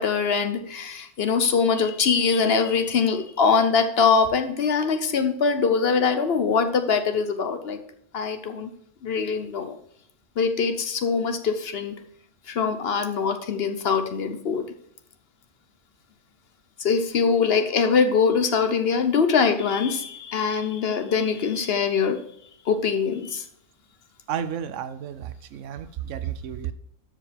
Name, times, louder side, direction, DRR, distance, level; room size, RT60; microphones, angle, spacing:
voice 1, 0.0-7.8 8.1-8.7 9.0-9.8 10.4-11.9 12.5-14.7 16.8-22.2 22.7-23.4, left 5 dB, 55° left, 7 dB, 1.0 m, -23 dB
voice 2, 24.3-26.7, right 9 dB, 75° right, 14 dB, 0.9 m, -32 dB
13.0 x 5.1 x 3.4 m, 0.71 s
omnidirectional pair, 1.3 m